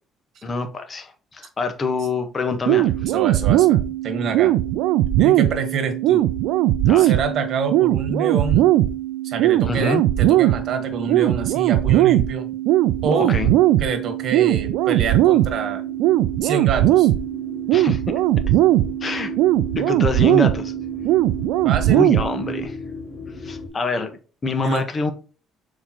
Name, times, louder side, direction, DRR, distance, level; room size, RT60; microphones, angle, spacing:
voice 1, 0.4-2.9 6.9-7.1 9.6-10.0 13.3-13.5 17.7-18.0 19.0-19.3 19.7-20.7 21.9-22.8 23.4-25.1, left 3 dB, 30° left, 1.3 m, -26 dB
sound 1, 2.7-22.7, right 14 dB, 85° right, 0.4 m, -19 dB
voice 2, 3.0-3.8 4.0-4.5 5.2-6.2 7.0-8.7 9.2-12.5 13.0-13.4 13.8-15.8 16.4-17.1 21.6-22.1 24.6-24.8, right 5 dB, 60° right, 1.6 m, -26 dB
sound 2, 12.7-23.7, left 4 dB, 55° left, 2.3 m, -39 dB
6.9 x 4.7 x 3.0 m
cardioid pair, 115°, 0 cm